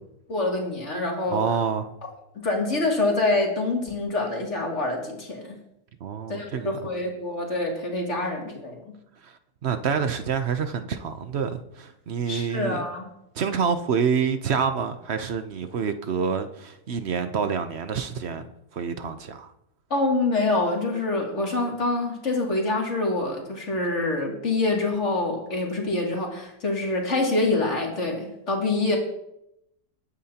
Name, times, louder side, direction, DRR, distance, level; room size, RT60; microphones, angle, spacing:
voice 1, 0.3-1.4 2.3-5.6 6.3-8.8 12.3-13.1 19.9-29.0, left 2 dB, 40° left, 2.8 m, -26 dB
voice 2, 1.3-1.9 6.0-6.8 9.2-12.8 13.3-19.5, right 6 dB, 55° right, 0.7 m, -27 dB
20.5 x 9.1 x 2.9 m
omnidirectional pair, 1.9 m